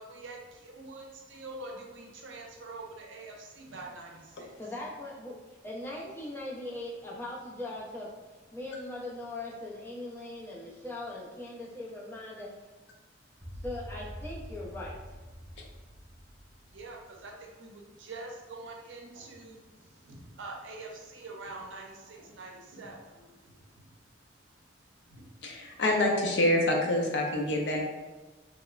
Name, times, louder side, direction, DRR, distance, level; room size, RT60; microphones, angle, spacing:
voice 1, 0.0-4.5 5.9-6.1 16.7-24.0 25.0-25.8, right 2 dB, 85° right, 0 dB, 0.5 m, -45 dB
voice 2, 4.6-8.1 8.5-12.5 13.6-15.0, left 2 dB, 10° left, -5 dB, 0.5 m, -40 dB
sound 1, 13.4-17.7, equal, 30° right, 0.9 m, -45 dB
voice 3, 25.4-27.8, left 1 dB, 65° left, 1 dB, 0.5 m, -26 dB
3.0 x 2.0 x 2.3 m, 1.3 s
head